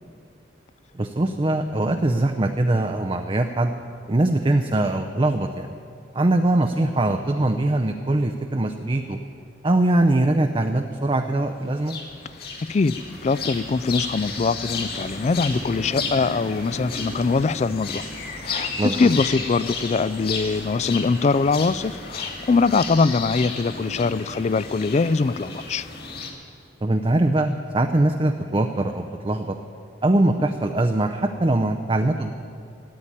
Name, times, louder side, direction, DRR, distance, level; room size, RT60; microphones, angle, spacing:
voice 1, 0.9-3.7 4.1-5.7 6.1-9.2 9.6-12.0 18.8-19.1 26.8-29.6 30.0-32.3, right 2 dB, 25° right, 5 dB, 0.5 m, -22 dB
sound 1, 11.8-26.3, left 3 dB, 55° left, 2.1 m, -33 dB
voice 2, 12.6-13.0 13.2-18.0 18.4-25.9, left 4 dB, 35° left, 18 dB, 0.3 m, -22 dB
14.0 x 8.8 x 9.7 m, 2.4 s
head